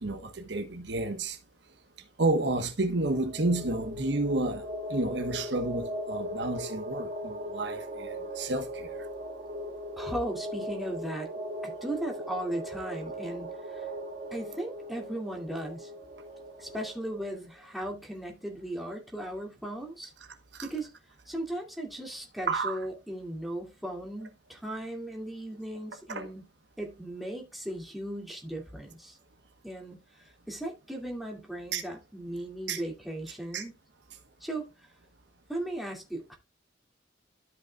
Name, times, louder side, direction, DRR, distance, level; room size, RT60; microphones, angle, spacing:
voice 1, 0.0-1.4 2.2-4.6 4.9-8.9 20.6-20.7 22.5-22.8 26.1-26.3 31.7-31.8 32.7-32.8 33.5-33.6, right 2 dB, 65° right, 1.1 m, -30 dB
sound 1, 3.1-17.4, equal, 45° right, 1.4 m, -39 dB
voice 2, 10.0-11.3 11.6-13.9 14.3-15.9 16.6-20.1 20.6-20.9 21.3-26.4 26.8-29.2 29.6-33.7 34.4-34.9 35.5-36.4, right 1 dB, ahead, 2.3 m, -37 dB
13.0 x 5.6 x 2.3 m
head